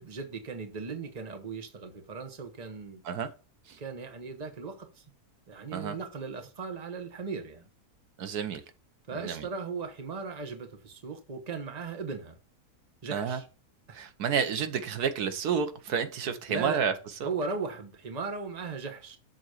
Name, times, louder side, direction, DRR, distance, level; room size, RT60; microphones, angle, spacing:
voice 1, 0.0-3.0 3.8-5.0 5.5-7.7 9.1-12.4 13.0-13.5 13.9-14.0 16.2-16.8 17.2-19.2, right 4 dB, 30° right, 1.1 m, -37 dB
voice 2, 8.2-8.6 9.1-9.4 13.1-13.4 13.9-16.9 17.2-17.3, right 7 dB, 85° right, 1.5 m, -30 dB
7.0 x 4.0 x 6.3 m
omnidirectional pair, 1.6 m